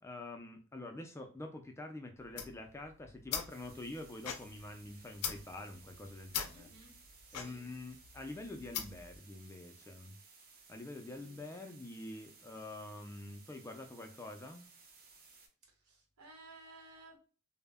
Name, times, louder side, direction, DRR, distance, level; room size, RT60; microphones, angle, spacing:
voice 1, 0.0-6.7 7.3-10.2 10.7-14.7, left 2 dB, 10° left, 4 dB, 0.3 m, -46 dB
sound 1, 2.2-9.2, left 8 dB, 90° left, 0.4 m, -43 dB
sound 2, 3.5-15.5, right 4 dB, 45° right, 0.6 m, -60 dB
voice 2, 6.5-6.9 7.3-7.6 11.1-11.5 15.7-17.2, right 2 dB, 90° right, 1 dB, 0.9 m, -57 dB
2.1 x 2.0 x 3.4 m, 0.37 s
head